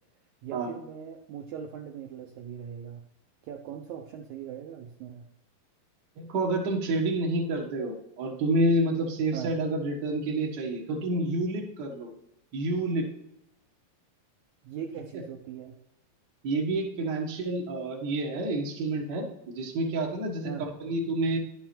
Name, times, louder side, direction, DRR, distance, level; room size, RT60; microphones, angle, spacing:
voice 1, 0.4-3.0 3.4-5.2 9.3-9.5 14.6-15.8 20.4-20.7, right 8 dB, 85° right, 2 dB, 1.6 m, -40 dB
voice 2, 6.2-12.1 12.5-13.1 16.4-21.4, right 2 dB, 50° right, 0 dB, 1.2 m, -29 dB
11.5 x 6.3 x 4.4 m, 0.81 s
omnidirectional pair, 4.3 m